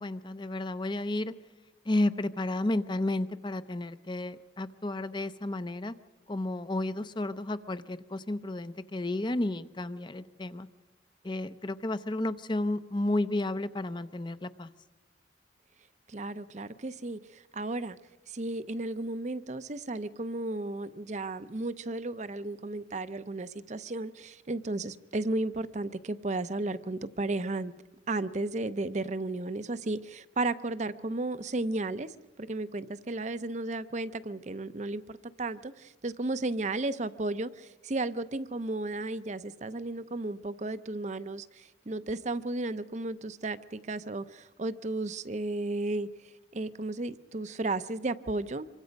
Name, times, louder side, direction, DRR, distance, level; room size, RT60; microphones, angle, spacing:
voice 1, 0.0-1.3 1.9-5.9 6.3-10.7 11.2-14.7, left 1 dB, 25° left, 13 dB, 0.6 m, -32 dB
voice 2, 16.1-18.0 18.3-27.7 28.1-48.8, right 2 dB, 40° right, 13 dB, 0.6 m, -34 dB
26.0 x 23.5 x 5.3 m, 1.2 s
head